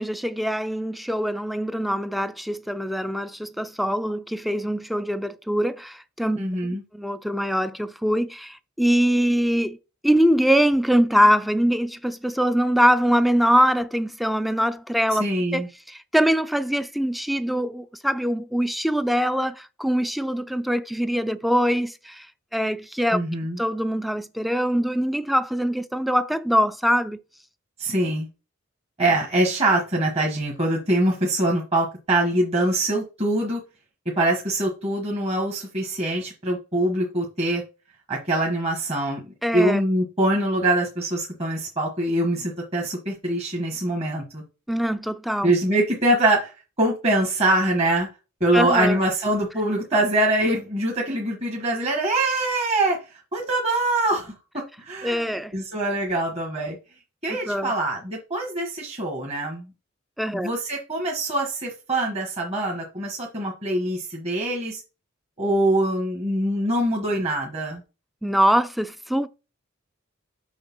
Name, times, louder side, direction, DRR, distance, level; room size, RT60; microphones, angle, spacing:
voice 1, 0.0-6.4 6.9-9.8 10.0-15.2 15.5-22.3 22.5-23.2 23.6-27.2 39.4-39.8 44.7-45.5 48.5-49.0 55.0-55.5 57.3-57.7 60.2-60.5 68.2-69.3, equal, ahead, 0.3 m, -23 dB
voice 2, 6.4-6.8 15.1-15.7 23.1-23.6 27.8-28.3 29.0-33.6 34.2-37.6 38.1-39.2 39.5-44.4 45.4-46.5 46.8-48.1 48.4-53.0 53.3-56.8 57.2-59.7 60.3-64.8 65.4-67.8, right 1 dB, 30° right, 1.3 m, -24 dB
6.5 x 3.3 x 6.0 m
head